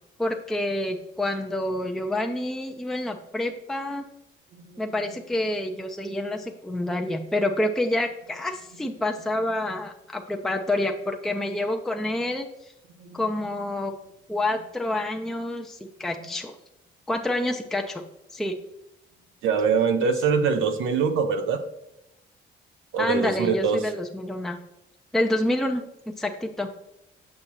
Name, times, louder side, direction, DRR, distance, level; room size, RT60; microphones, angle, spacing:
voice 1, 0.2-4.0 4.8-12.5 13.1-13.9 14.3-16.6 17.1-18.0 18.3-18.6 20.0-20.1 23.0-24.6 25.1-26.7, left 1 dB, ahead, 3 dB, 0.5 m, -28 dB
voice 2, 19.4-21.6 22.9-23.8, right 6 dB, 85° right, 7 dB, 0.8 m, -23 dB
6.6 x 5.9 x 2.8 m, 0.90 s
cardioid pair, 90°, 20 cm